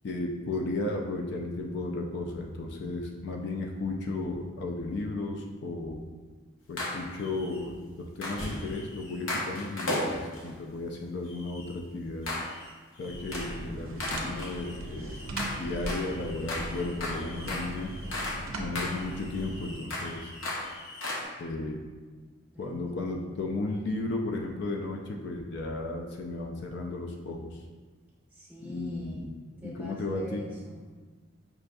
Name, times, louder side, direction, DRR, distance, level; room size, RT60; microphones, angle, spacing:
voice 1, 0.0-6.0 6.7-12.3 13.0-15.2 15.6-17.9 18.6-20.3 21.4-21.8 22.6-27.6 28.6-29.3 29.6-30.4, left 2 dB, 55° left, 0 dB, 0.3 m, -34 dB
sound 1, 6.8-7.6 8.2-10.5 11.3-11.7 12.3-12.7 13.0-13.6 14.0-18.5 18.8-21.2, left 1 dB, 70° left, 0.7 m, -36 dB
sound 2, 13.1-19.7, right 1 dB, 70° right, 0.5 m, -39 dB
voice 2, 22.0-22.8 23.2-23.5 28.3-29.4 29.6-30.9, left 1 dB, 10° right, -5 dB, 0.7 m, -46 dB
5.5 x 2.6 x 2.2 m, 1.4 s
head